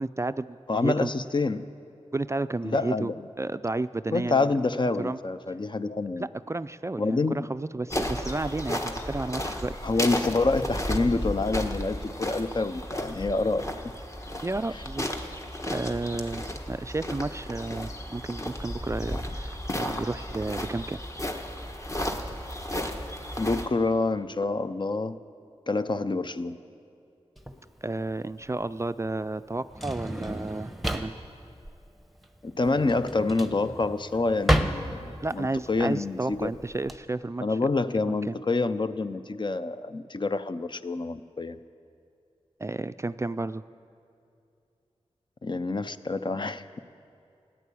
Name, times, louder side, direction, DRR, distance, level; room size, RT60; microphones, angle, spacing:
voice 1, 0.0-1.1 2.1-3.1 3.4-4.6 5.0-5.2 6.2-9.7 14.4-15.1 15.7-21.0 27.8-31.2 35.2-37.4 38.1-38.3 42.6-43.6, right 2 dB, 25° right, 13 dB, 0.4 m, -32 dB
voice 2, 0.7-1.6 2.6-3.2 4.1-6.3 7.0-7.4 9.8-13.7 23.4-25.2 25.7-26.6 32.4-35.0 35.3-36.5 37.4-41.6 45.4-46.7, left 3 dB, 45° left, 11 dB, 0.6 m, -27 dB
sound 1, 7.9-23.7, equal, 25° left, 1.4 m, -33 dB
Drawer open or close, 27.4-37.0, right 1 dB, ahead, 1.1 m, -32 dB
15.5 x 10.0 x 8.4 m, 2.6 s
wide cardioid pair, 55°, 11 cm